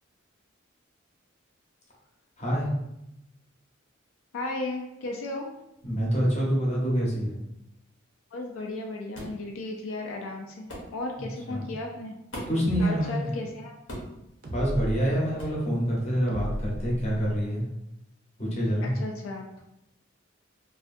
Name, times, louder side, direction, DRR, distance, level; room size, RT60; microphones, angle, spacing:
voice 1, 2.4-2.7 5.8-7.4 11.5-11.7 12.5-13.3 14.5-17.6 18.4-18.9, equal, 35° left, -4 dB, 0.7 m, -26 dB
voice 2, 4.3-5.5 8.3-12.1 12.8-13.7 18.8-19.5, left 2 dB, 85° left, 1 dB, 0.4 m, -35 dB
sound 1, 9.1-9.4 10.7-10.9 12.3-12.7 13.9-14.2 15.4-15.6, equal, 70° left, 0.8 m, -38 dB
sound 2, 12.6-12.9 14.4-15.0 16.3-17.4, equal, 45° right, 0.4 m, -33 dB
2.5 x 2.4 x 2.5 m, 0.86 s
head